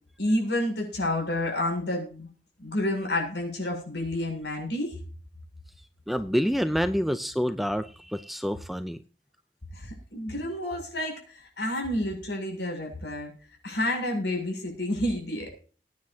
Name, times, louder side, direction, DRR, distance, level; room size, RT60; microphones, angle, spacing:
voice 1, 0.2-2.3 2.6-5.0 9.7-13.3 13.6-15.5, left 1 dB, 65° left, 2 dB, 7.0 m, -29 dB
voice 2, 6.1-9.0, equal, ahead, 11 dB, 0.5 m, -27 dB
21.5 x 9.5 x 2.8 m, 0.39 s
head